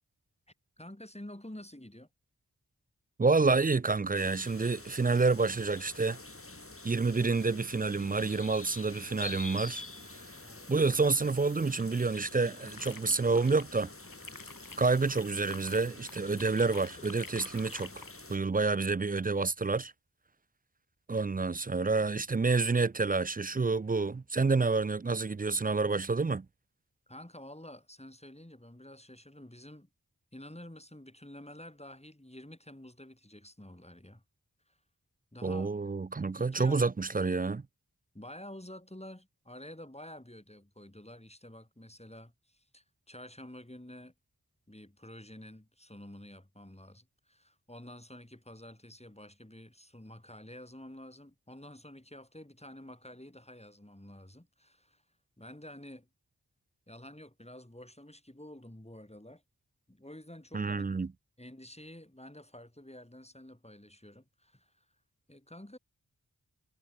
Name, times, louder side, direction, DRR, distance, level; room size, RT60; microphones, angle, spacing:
voice 1, 0.8-2.1 10.4-10.7 13.1-13.2 27.1-29.9 30.3-34.2 34.7-34.8 35.3-35.8 36.4-36.9 38.1-44.1 44.7-55.0 55.4-56.1 56.9-59.4 59.9-61.0 61.4-64.9 65.3-65.8, left 1 dB, 15° left, 5.4 m, -49 dB
voice 2, 3.2-6.2 6.8-9.8 10.7-13.9 14.8-18.0 18.3-19.9 21.1-26.5 35.4-37.7 60.5-61.1, right 4 dB, 25° right, 0.4 m, -28 dB
sound 1, 4.2-18.4, left 2 dB, 35° left, 2.8 m, -47 dB
sound 2, 11.6-13.7 14.0-18.2, left 4 dB, 65° left, 1.7 m, -49 dB
wide cardioid pair, 40°, 37 cm